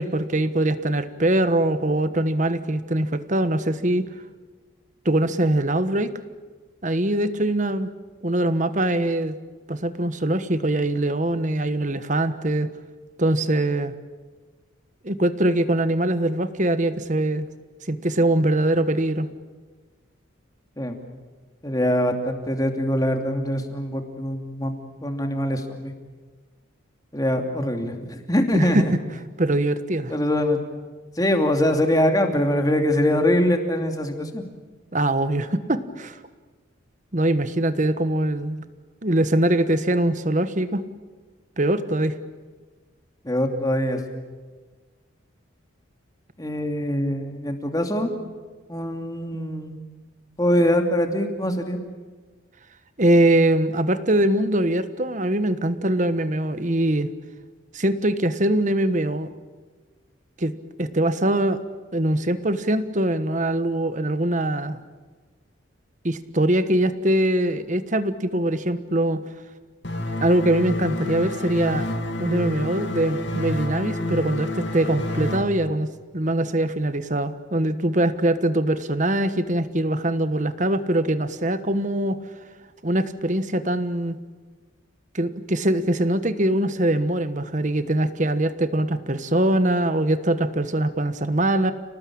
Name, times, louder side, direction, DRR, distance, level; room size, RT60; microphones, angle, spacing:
voice 1, 0.0-4.1 5.0-6.1 6.8-7.9 8.2-9.3 9.7-12.7 13.2-13.9 15.0-17.5 17.9-19.3 28.5-28.8 29.4-30.1 34.9-36.2 37.1-38.7 39.0-40.8 41.6-42.2 53.0-57.1 57.7-59.3 60.4-60.5 60.8-61.6 61.9-64.8 66.0-69.2 70.2-71.8 72.2-82.2 82.8-84.2 85.1-91.7, right 1 dB, 40° right, 11 dB, 1.3 m, -22 dB
voice 2, 21.6-25.9 27.1-28.9 30.1-30.6 31.2-34.4 43.2-44.0 46.4-48.1 48.7-49.8 50.4-51.8, left 1 dB, 20° left, 4 dB, 2.7 m, -23 dB
sound 1, 69.8-75.4, left 1 dB, 60° left, 2.8 m, -28 dB
30.0 x 19.0 x 8.7 m, 1.4 s
head